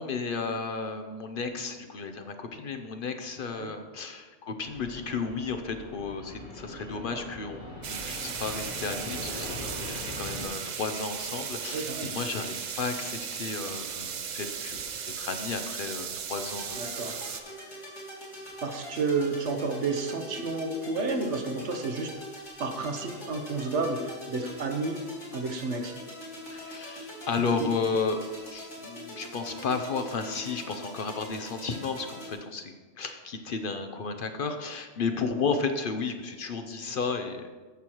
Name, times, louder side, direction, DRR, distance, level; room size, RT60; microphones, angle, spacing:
voice 1, 0.0-14.9 15.2-17.2 26.5-28.2 28.5-37.4, left 4 dB, 55° left, 6 dB, 0.7 m, -33 dB
Fixed-wing aircraft airplane, 4.6-10.5, left 2 dB, 90° left, 2.1 m, -41 dB
sound 1, 7.8-17.4, right 7 dB, 50° right, 0.5 m, -36 dB
voice 2, 11.7-12.1 16.8-17.2 18.6-22.1 22.6-25.0 25.3-25.9 27.4-27.7, right 3 dB, 75° right, 5 dB, 1.2 m, -31 dB
sound 2, 16.3-32.3, equal, 75° left, 3.1 m, -43 dB
14.0 x 6.2 x 3.0 m, 1.4 s
omnidirectional pair, 1.2 m